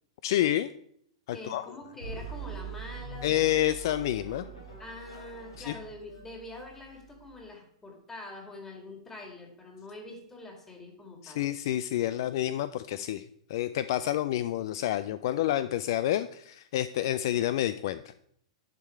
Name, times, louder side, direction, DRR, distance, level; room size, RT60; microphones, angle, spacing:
voice 1, 0.2-0.7 1.3-1.7 3.2-4.5 5.6-5.7 11.2-13.2 13.5-18.1, left 13 dB, 55° left, 13 dB, 0.3 m, -29 dB
voice 2, 1.3-3.4 4.8-11.5, left 2 dB, 15° left, 3 dB, 2.2 m, -45 dB
sound 1, 2.0-7.5, right 6 dB, 90° left, 3.7 m, -44 dB
10.5 x 4.8 x 4.5 m, 0.68 s
figure-of-eight pair, 100°, 3 cm